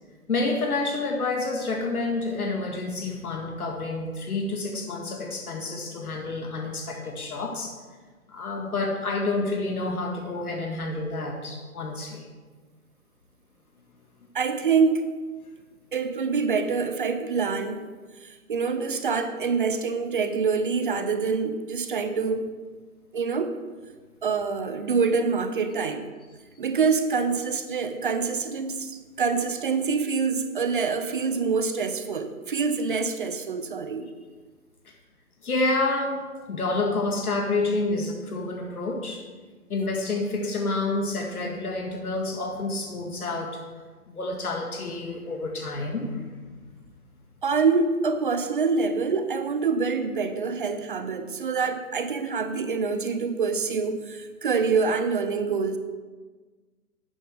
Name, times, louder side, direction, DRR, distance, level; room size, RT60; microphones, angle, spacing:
voice 1, 0.3-7.8 8.3-12.3 34.9-35.0 35.4-39.2 39.7-43.6 44.1-46.5, left 2 dB, 70° left, 2 dB, 1.9 m, -29 dB
voice 2, 14.3-15.0 15.9-17.9 18.2-22.4 23.1-23.6 24.2-26.0 26.6-34.1 47.4-55.8, right 5 dB, 35° right, 9 dB, 0.7 m, -26 dB
12.5 x 9.1 x 3.5 m, 1.4 s
hypercardioid pair, 150°, 45 cm